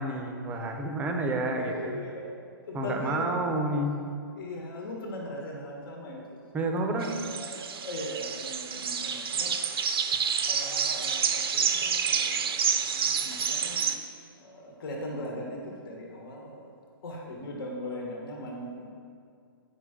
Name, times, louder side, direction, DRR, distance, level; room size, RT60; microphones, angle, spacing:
voice 1, 0.0-2.0 2.7-4.0 6.5-7.1, right 2 dB, 10° right, 3 dB, 0.6 m, -29 dB
voice 2, 1.5-2.3 2.6-3.3 4.4-6.4 6.9-10.0 10.4-14.0 14.4-16.7 17.0-18.9, left 1 dB, 65° left, -1 dB, 1.3 m, -39 dB
sound 1, 7.0-13.9, right 7 dB, 75° right, 0.6 m, -29 dB
8.4 x 5.5 x 3.7 m, 2.3 s
hypercardioid pair, 150°, 12 cm